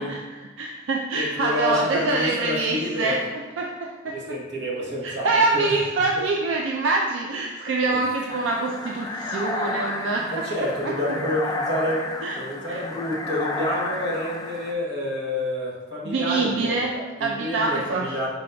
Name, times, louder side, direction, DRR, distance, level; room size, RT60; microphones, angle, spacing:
voice 1, 0.0-4.4 5.0-10.5 10.8-11.0 12.2-12.4 12.7-12.8 16.0-18.3, right 3 dB, 80° right, 0 dB, 0.4 m, -25 dB
voice 2, 1.1-3.2 4.1-5.7 7.9-8.0 10.3-12.0 12.4-18.3, left 1 dB, 55° right, -3 dB, 1.0 m, -28 dB
sound 1, 8.3-14.7, left 2 dB, 20° left, 0.3 m, -31 dB
5.2 x 4.5 x 2.2 m, 1.3 s
head